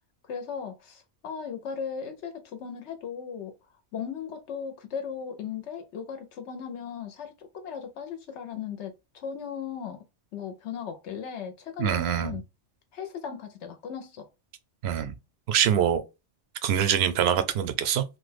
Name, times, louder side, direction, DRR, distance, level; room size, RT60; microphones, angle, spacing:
voice 1, 0.3-3.5 3.9-10.0 10.3-12.4 12.9-14.3, left 7 dB, 75° left, 0.9 m, -37 dB
voice 2, 11.8-12.4 14.8-15.1 15.5-16.0 16.6-18.0, right 9 dB, 70° right, 0.8 m, -24 dB
3.1 x 2.2 x 3.2 m
omnidirectional pair, 1.2 m